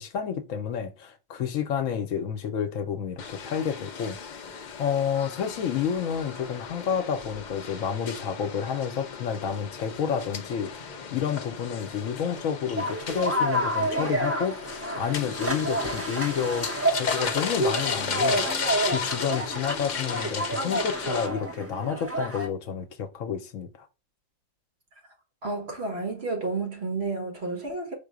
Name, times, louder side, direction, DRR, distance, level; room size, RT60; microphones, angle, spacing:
voice 1, 0.0-4.2 4.8-14.6 15.0-23.9, left 7 dB, 75° left, 1.1 m, -30 dB
sound 1, 3.2-21.3, left 5 dB, 50° left, 0.6 m, -35 dB
sound 2, 12.8-22.5, right 1 dB, 15° right, 0.6 m, -29 dB
voice 2, 25.4-28.0, right 3 dB, 50° right, 1.6 m, -31 dB
5.1 x 2.2 x 4.7 m
omnidirectional pair, 1.4 m